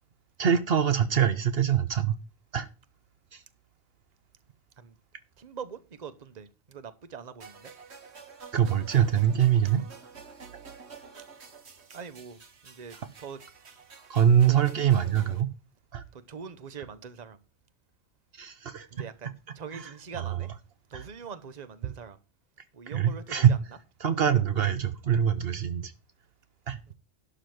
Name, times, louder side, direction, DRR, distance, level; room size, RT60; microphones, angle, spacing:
voice 1, 0.4-2.1 2.5-2.7 3.3-3.4 8.5-9.8 14.1-15.5 15.9-16.0 18.4-18.9 19.7-19.9 20.2-20.4 20.9-21.0 22.9-23.6 24.0-25.9 26.7-26.8, right 9 dB, 65° right, 1.0 m, -24 dB
voice 2, 5.4-7.7 11.9-13.4 14.1-14.7 16.1-17.4 18.9-20.5 20.9-22.2 22.7-23.6, right 6 dB, 40° right, 1.0 m, -43 dB
sound 1, 7.4-15.4, right 5 dB, 85° right, 1.7 m, -49 dB
11.5 x 4.0 x 7.8 m
omnidirectional pair, 1.1 m